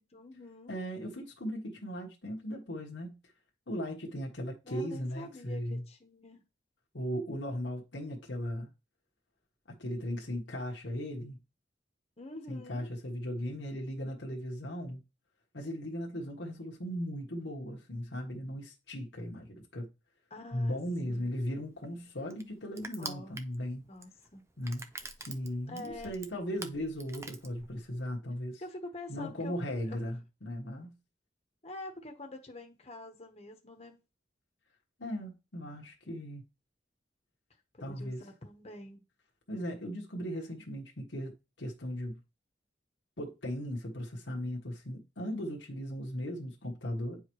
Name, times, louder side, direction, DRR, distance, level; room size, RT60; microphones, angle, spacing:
voice 1, 0.0-0.8 4.6-6.4 12.2-12.9 20.3-20.8 21.0-21.3 23.0-23.4 23.9-24.5 25.7-26.2 28.6-29.6 29.9-30.0 31.6-34.0 37.7-39.1, left 2 dB, 35° left, 1.1 m, -46 dB
voice 2, 0.7-3.2 3.7-5.8 6.9-8.7 9.7-11.4 12.5-15.0 15.5-19.9 20.5-23.8 24.6-24.8 25.2-28.6 29.1-30.9 35.0-36.4 37.8-38.2 39.5-42.2 43.2-47.2, equal, 90° left, 1.3 m, -37 dB
Crushing, 21.2-28.0, right 3 dB, 15° right, 0.5 m, -46 dB
9.2 x 4.8 x 3.1 m
head